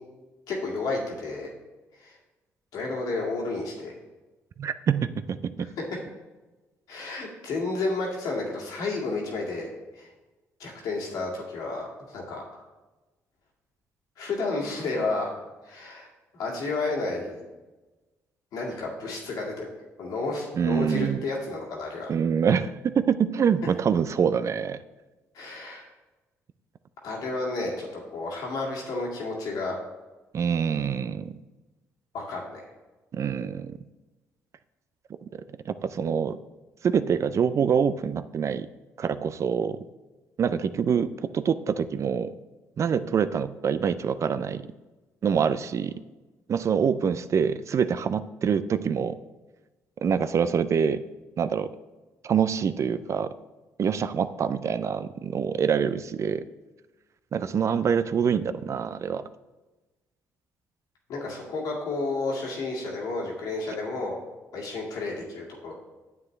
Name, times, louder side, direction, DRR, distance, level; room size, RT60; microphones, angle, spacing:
voice 1, 0.5-1.5 2.0-2.2 2.7-3.9 6.9-9.7 9.9-10.1 10.6-12.6 14.2-15.3 15.6-16.1 16.3-17.4 18.5-19.7 20.0-22.1 25.3-25.9 27.0-29.7 32.1-32.7 61.1-64.2 64.5-65.7, left 3 dB, 75° left, -2 dB, 2.1 m, -31 dB
voice 2, 4.6-5.7 20.5-21.2 22.1-24.8 30.3-31.3 33.1-33.8 35.7-36.4 36.8-38.7 39.0-39.8 40.4-42.3 42.8-44.7 45.2-45.9 46.5-49.2 50.0-51.0 51.4-51.7 52.2-53.3 53.8-56.4 57.3-59.2, right 7 dB, 50° right, 13 dB, 0.4 m, -25 dB
9.3 x 7.6 x 3.2 m, 1.2 s
supercardioid pair, 65°, 6 cm